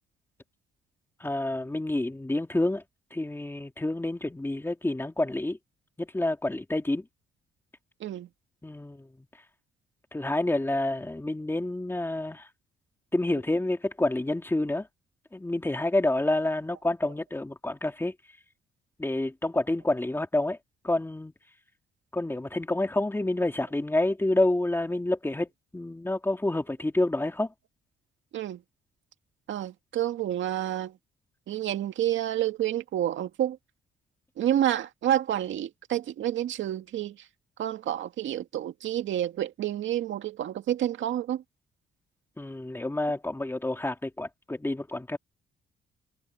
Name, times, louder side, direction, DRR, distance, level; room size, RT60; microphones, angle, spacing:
voice 1, 1.2-2.8 3.1-5.6 6.0-7.0 8.6-9.3 10.1-12.5 13.1-14.9 15.3-18.1 19.0-20.6 20.8-21.3 22.1-25.5 25.7-27.5 42.4-45.2, left 2 dB, 10° left, 2.7 m, -28 dB
voice 2, 29.5-30.9 31.5-33.6 34.4-37.2 37.6-41.4, right 11 dB, 75° right, 2.1 m, -29 dB
cardioid pair, 90°, 20 cm